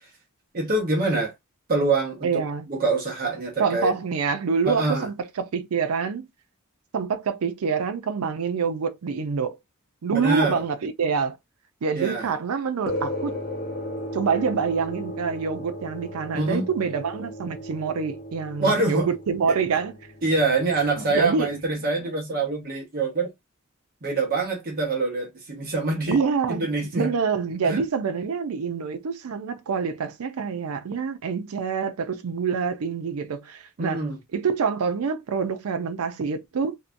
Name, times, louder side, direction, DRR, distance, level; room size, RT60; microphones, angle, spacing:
voice 1, 0.5-1.3 1.7-2.4 2.7-3.9 4.7-5.1 10.1-10.6 12.0-12.3 16.3-16.7 18.6-19.1 20.2-23.3 24.0-26.2 26.5-27.1 27.7-27.8 33.8-34.2, right 3 dB, 45° right, 0.8 m, -25 dB
voice 2, 2.2-2.7 3.6-6.3 6.9-9.6 10.0-11.4 11.8-13.4 14.1-19.9 21.1-21.5 26.1-34.0 34.3-36.8, right 5 dB, 85° right, 0.4 m, -26 dB
sound 1, 12.9-21.6, equal, 45° left, 0.7 m, -36 dB
2.6 x 2.1 x 2.5 m
head